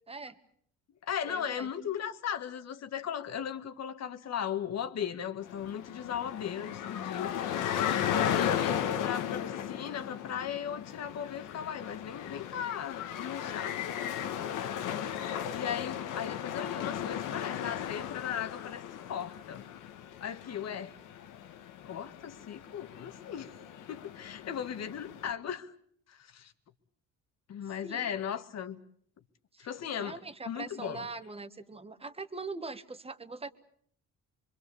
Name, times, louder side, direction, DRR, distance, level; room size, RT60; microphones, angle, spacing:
voice 1, 0.1-0.4 1.3-1.7 7.5-7.6 27.8-28.1 29.5-29.7 29.9-33.5, right 3 dB, 20° right, 1.6 m, -42 dB
voice 2, 1.1-7.5 8.1-14.8 15.5-19.6 20.2-20.9 21.8-23.6 23.9-25.7 26.1-26.5 27.5-28.8 29.6-30.2 30.5-31.1, left 8 dB, 55° left, 1.7 m, -37 dB
sound 1, 5.4-25.3, left 9 dB, 80° left, 1.6 m, -36 dB
25.5 x 24.0 x 7.0 m
cardioid pair, 110°, 30 cm